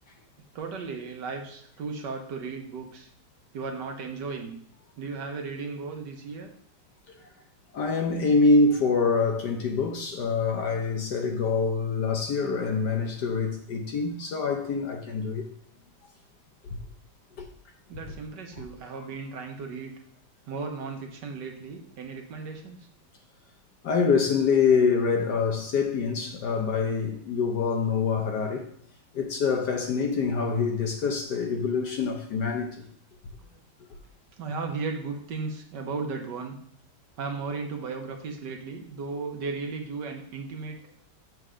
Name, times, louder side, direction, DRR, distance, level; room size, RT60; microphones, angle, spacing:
voice 1, 0.5-3.1 3.5-4.6 5.0-6.5 12.4-12.7 17.9-20.0 20.5-22.9 31.8-32.0 33.4-33.5 34.4-36.6 37.2-41.0, right 4 dB, 65° right, 1.4 m, -36 dB
voice 2, 7.7-15.5 17.4-17.5 23.8-28.7 29.1-32.8, left 4 dB, 60° left, 1.2 m, -25 dB
7.8 x 3.5 x 6.2 m
omnidirectional pair, 2.3 m